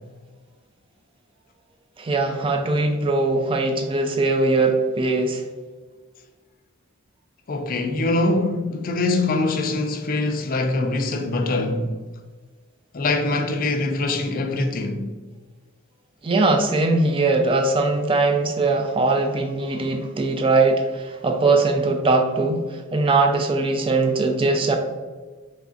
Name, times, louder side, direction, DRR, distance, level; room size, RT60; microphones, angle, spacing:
voice 1, 2.0-5.4 16.2-24.8, right 3 dB, 25° right, 0.3 m, -21 dB
voice 2, 7.5-11.9 12.9-15.1, left 2 dB, 40° left, 0.4 m, -23 dB
3.2 x 2.4 x 3.7 m
head